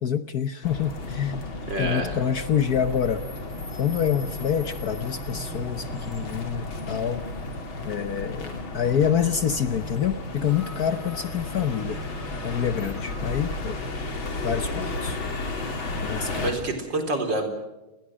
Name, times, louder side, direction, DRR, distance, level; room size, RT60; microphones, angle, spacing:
voice 1, 0.0-1.5 1.8-3.2 3.8-7.3 7.8-12.0 12.4-13.8 14.4-15.2 16.0-16.5, left 8 dB, 55° left, 11 dB, 1.3 m, -27 dB
sound 1, 0.6-16.5, left 2 dB, 75° left, 4.0 m, -33 dB
voice 2, 1.7-2.2 16.3-17.5, right 2 dB, 60° right, 5 dB, 4.5 m, -27 dB
29.5 x 21.0 x 6.3 m, 1.1 s
omnidirectional pair, 2.2 m